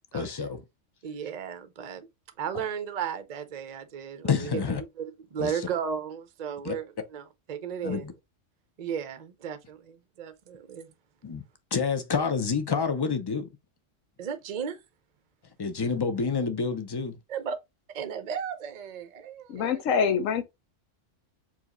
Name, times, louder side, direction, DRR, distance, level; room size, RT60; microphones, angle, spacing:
voice 1, 0.1-0.6 2.5-2.6 4.2-4.8 5.4-5.7 6.6-6.8 7.8-8.1 11.2-11.4 11.7-13.5 15.6-17.2, left 5 dB, 40° left, 0.3 m, -28 dB
voice 2, 1.0-2.1 2.4-6.8 7.1-8.0 8.8-10.9 14.2-14.8 17.3-17.6 17.9-19.8, right 7 dB, 45° right, 0.6 m, -35 dB
voice 3, 19.5-20.4, left 6 dB, 85° left, 1.1 m, -25 dB
4.7 x 2.8 x 3.0 m
omnidirectional pair, 1.3 m